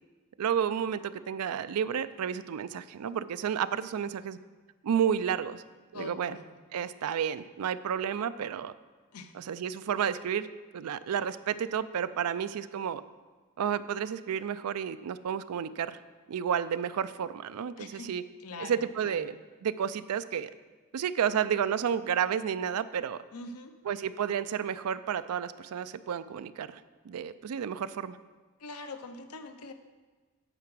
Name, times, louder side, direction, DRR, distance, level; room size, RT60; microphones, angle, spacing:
voice 1, 0.4-4.4 4.8-5.6 5.9-6.4 6.7-8.7 9.4-10.5 10.7-13.0 13.6-16.0 16.3-18.2 18.6-19.3 19.6-20.5 20.9-23.2 23.9-28.2, right 8 dB, 85° right, 14 dB, 0.4 m, -31 dB
voice 2, 5.9-6.6 9.1-9.3 17.8-18.1 18.4-19.4 23.3-23.8 28.6-29.7, left 2 dB, 85° left, 7 dB, 0.7 m, -43 dB
9.0 x 4.8 x 6.1 m, 1.3 s
head